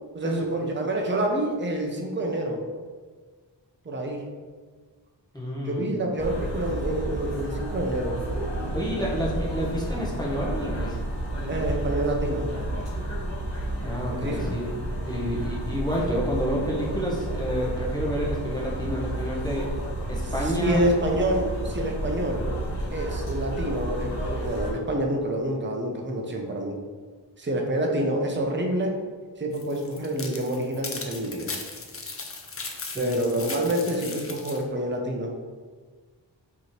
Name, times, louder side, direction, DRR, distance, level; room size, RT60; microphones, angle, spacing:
voice 1, 0.1-2.6 3.8-4.2 5.6-8.2 11.5-12.5 14.1-14.5 20.4-22.5 22.9-26.8 27.4-29.0 29.4-31.6 33.0-35.3, right 1 dB, 25° right, 1 dB, 0.6 m, -27 dB
voice 2, 5.3-5.9 8.7-11.0 13.8-14.7 15.0-19.7 20.1-20.8 32.9-33.2 33.9-34.0, equal, 10° left, -5 dB, 0.9 m, -29 dB
sound 1, 6.2-24.7, right 1 dB, 75° left, 1.3 m, -31 dB
sound 2, 29.5-34.6, left 4 dB, 35° left, 0.5 m, -37 dB
5.3 x 3.0 x 3.1 m, 1.5 s
wide cardioid pair, 125°, 43 cm